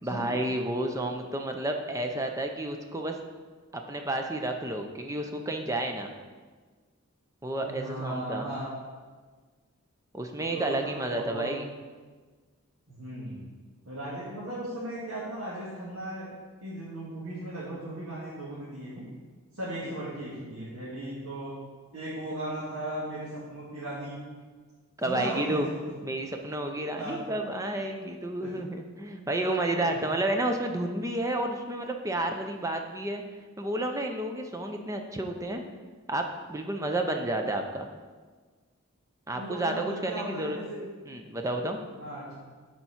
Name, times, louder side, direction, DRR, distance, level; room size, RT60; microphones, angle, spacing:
voice 1, 0.0-3.1 3.7-6.1 7.4-8.5 10.1-11.7 19.8-19.9 25.0-25.7 26.0-33.2 33.6-35.6 36.1-37.9 39.3-40.6 41.1-41.8, right 1 dB, 15° right, 4 dB, 0.5 m, -31 dB
voice 2, 7.6-8.7 10.3-11.5 12.9-13.4 13.8-16.3 16.6-19.0 19.5-21.5 21.9-24.2 25.0-25.8 27.0-27.2 28.4-28.5 29.1-29.2 29.7-30.0 39.3-40.8 42.0-42.3, right 1 dB, 70° right, -8 dB, 1.8 m, -37 dB
7.0 x 4.4 x 5.7 m, 1.4 s
head